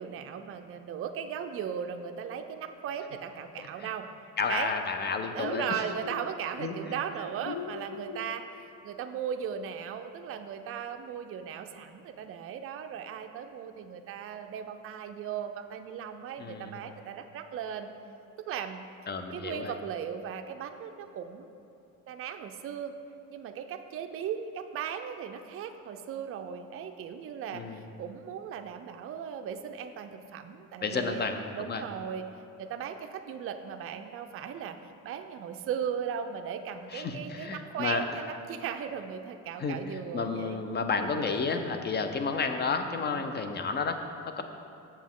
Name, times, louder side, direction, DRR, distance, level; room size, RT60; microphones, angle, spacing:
voice 1, 0.0-4.1 4.5-4.7 5.3-17.9 18.5-18.8 19.3-21.5 22.1-22.9 23.3-32.3 32.6-34.8 35.0-40.6 41.0-41.3 43.1-43.3, right 8 dB, 40° right, 6 dB, 0.4 m, -37 dB
voice 2, 3.6-3.9 4.4-5.8 6.6-7.0 16.4-16.7 19.1-19.7 27.5-27.8 30.8-31.8 36.9-38.0 39.6-44.4, left 4 dB, 30° left, 7 dB, 0.6 m, -32 dB
sound 1, 5.4-6.3 7.4-8.3, left 7 dB, 75° left, 0.5 m, -39 dB
7.3 x 6.9 x 3.7 m, 2.6 s
cardioid pair, 100°, 34 cm